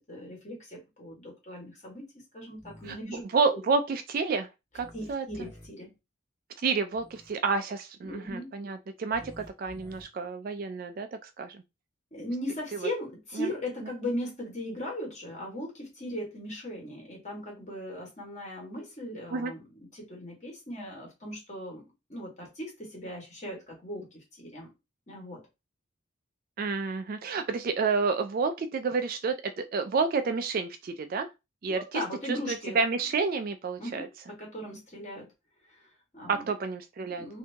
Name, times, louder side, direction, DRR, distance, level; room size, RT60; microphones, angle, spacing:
voice 1, 0.1-2.0 2.3-3.2 4.9-5.9 8.0-8.5 12.1-19.6 19.9-21.8 22.1-24.7 25.1-25.4 31.7-32.8 33.8-35.2 35.7-36.5 37.2-37.4, left 1 dB, 35° left, 1.4 m, -38 dB
sound 1, 2.6-2.9 4.7-5.7 6.9-7.3 9.1-10.0, equal, 10° left, 1.0 m, -50 dB
voice 2, 2.9-4.5 4.7-5.3 6.6-11.6 13.4-13.5 19.3-19.5 26.6-31.3 31.6-32.0 32.3-34.1 36.3-37.3, right 4 dB, 45° right, 0.3 m, -30 dB
2.8 x 2.7 x 3.3 m
head